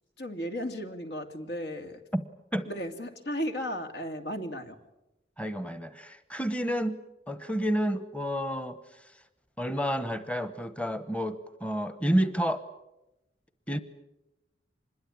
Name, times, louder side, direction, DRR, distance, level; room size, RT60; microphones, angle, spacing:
voice 1, 0.2-2.0 2.7-4.8, equal, 75° left, 7 dB, 2.5 m, -35 dB
voice 2, 5.4-7.0 7.3-8.8 9.6-12.6 13.7-13.8, equal, 5° left, 12 dB, 1.0 m, -30 dB
25.5 x 21.5 x 8.6 m, 0.95 s
head